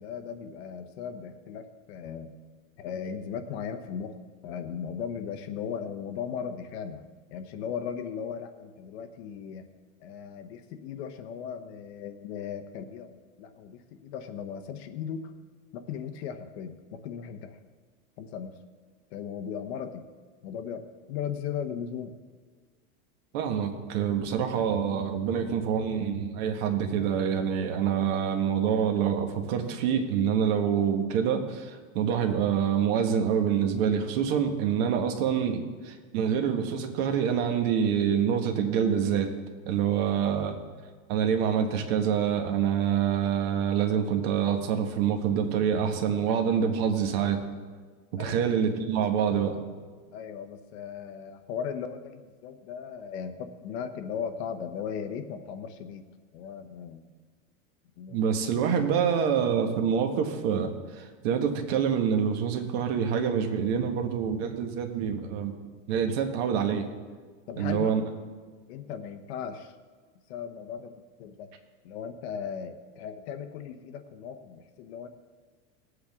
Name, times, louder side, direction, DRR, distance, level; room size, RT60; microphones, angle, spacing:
voice 1, 0.0-2.3 2.8-4.2 4.4-7.0 7.3-9.7 10.0-15.3 15.7-17.6 18.2-18.6 19.1-20.0 20.4-22.1 48.2-48.4 50.1-56.0 56.3-57.1 58.0-58.2 67.5-68.1 68.7-69.7 70.3-71.5 71.8-75.1, left 7 dB, 45° left, 7 dB, 0.9 m, -37 dB
voice 2, 23.3-39.3 39.6-40.6 41.1-47.4 48.1-49.5 58.1-65.5 65.9-66.9 67.6-68.0, right 8 dB, 45° right, 4 dB, 1.5 m, -26 dB
18.5 x 8.1 x 3.6 m, 1.5 s
supercardioid pair, 160°, 42 cm